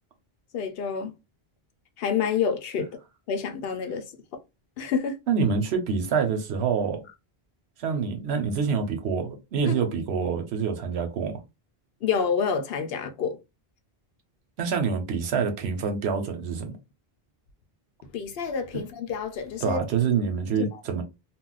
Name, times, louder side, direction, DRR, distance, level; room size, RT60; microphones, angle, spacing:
voice 1, 0.5-1.1 2.0-3.0 3.3-4.1 4.8-5.2 9.7-9.8 12.0-13.4 18.1-19.8 20.6-20.8, left 6 dB, 70° left, 0.8 m, -28 dB
voice 2, 5.3-7.0 7.8-11.4 14.6-16.7 19.6-21.0, right 6 dB, 85° right, 1.0 m, -26 dB
2.4 x 2.0 x 3.8 m
omnidirectional pair, 1.0 m